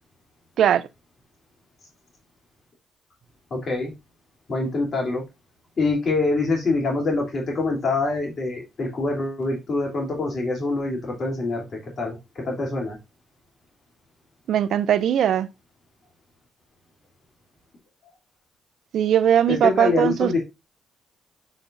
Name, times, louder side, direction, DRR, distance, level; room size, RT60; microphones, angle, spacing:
voice 1, 3.5-3.9 4.5-5.2 5.8-11.6 12.0-13.0 19.5-20.4, left 3 dB, 50° left, 3.1 m, -25 dB
voice 2, 14.5-15.5 18.9-20.4, right 9 dB, 70° right, 0.5 m, -20 dB
6.8 x 6.0 x 2.6 m
supercardioid pair, 65°, 0 cm